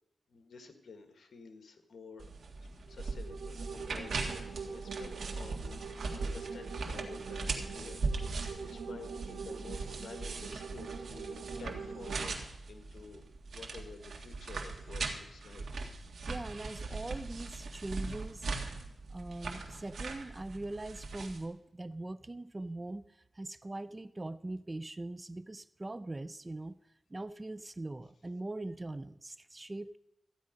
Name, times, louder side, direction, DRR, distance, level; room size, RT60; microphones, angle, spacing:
voice 1, 0.3-2.2 2.9-5.8 6.1-13.2 13.5-15.6, left 4 dB, 70° left, 6 dB, 1.8 m, -51 dB
sound 1, 2.2-21.4, right 3 dB, 70° right, 1.7 m, -40 dB
sound 2, 2.9-12.3, right 5 dB, 85° right, 0.6 m, -44 dB
voice 2, 16.3-18.5 19.1-26.8 27.1-30.0, right 2 dB, 20° right, 15 dB, 0.4 m, -41 dB
14.0 x 10.0 x 5.2 m, 0.85 s
wide cardioid pair, 130°, 0 cm